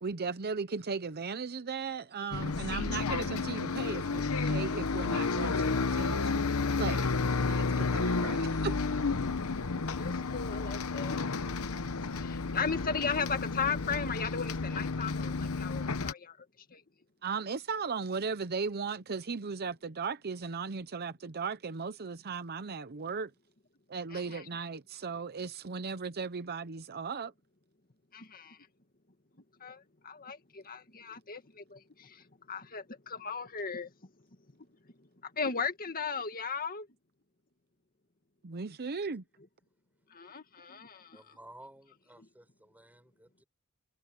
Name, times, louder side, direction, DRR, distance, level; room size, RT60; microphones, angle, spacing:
voice 1, 0.0-7.1 7.5-8.8 17.2-23.3 23.9-27.3 38.4-39.2, right 5 dB, 45° right, 0.7 m, -37 dB
Bus, 2.3-16.1, left 4 dB, 75° left, 0.9 m, -31 dB
voice 2, 10.0-11.7 12.0-16.5 16.7-16.8 24.1-24.5 28.1-28.6 29.6-33.9 35.2-36.9 40.1-41.4, left 5 dB, 40° left, 2.0 m, -37 dB
voice 3, 41.1-43.4, right 1 dB, 10° right, 6.6 m, -55 dB
head